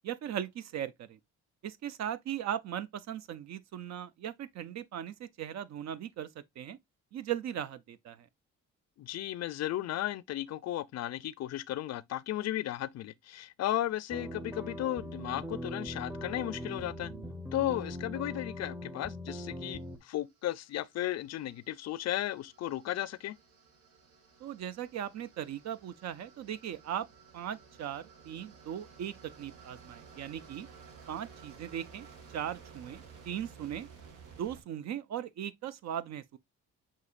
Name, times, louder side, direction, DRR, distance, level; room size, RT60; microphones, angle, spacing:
voice 1, 0.0-1.2 1.6-6.3 6.6-6.8 7.1-8.3 24.4-27.1 27.3-30.7 31.1-32.1 32.3-33.9 34.4-36.4, right 10 dB, 65° right, 0.5 m, -38 dB
voice 2, 9.0-17.1 17.5-23.4, left 13 dB, 60° left, 0.5 m, -35 dB
sound 1, 14.1-20.0, equal, 5° right, 0.6 m, -41 dB
sound 2, 19.9-34.6, right 6 dB, 90° right, 1.3 m, -55 dB
6.4 x 2.8 x 2.4 m
cardioid pair, 90°, 30 cm